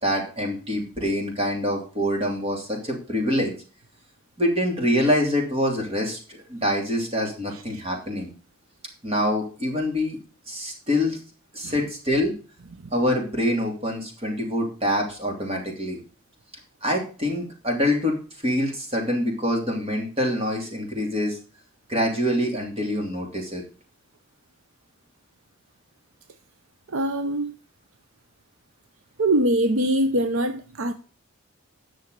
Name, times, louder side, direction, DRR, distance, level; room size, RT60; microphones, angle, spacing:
voice 1, 0.0-3.5 4.4-8.3 9.0-10.2 10.5-11.2 11.5-12.3 12.9-16.0 16.8-18.2 18.4-21.4 21.9-23.6, equal, 25° right, 2.9 m, -25 dB
voice 2, 26.9-27.5 29.2-30.9, right 1 dB, 75° right, 0.8 m, -22 dB
10.0 x 6.4 x 6.6 m
head